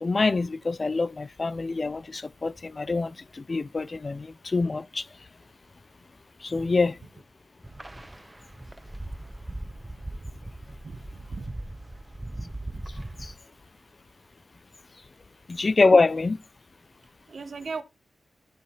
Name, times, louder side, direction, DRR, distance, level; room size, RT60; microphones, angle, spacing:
voice 1, 0.0-5.1 6.4-7.0 13.2-13.3 15.5-16.4, left 3 dB, 40° left, 0.4 m, -25 dB
sound 1, 7.6-13.3, right 1 dB, 20° right, 0.6 m, -39 dB
voice 2, 10.8-11.6 17.3-17.8, right 4 dB, 60° right, 0.9 m, -38 dB
14.0 x 5.5 x 2.8 m
cardioid pair, 65°, 0 cm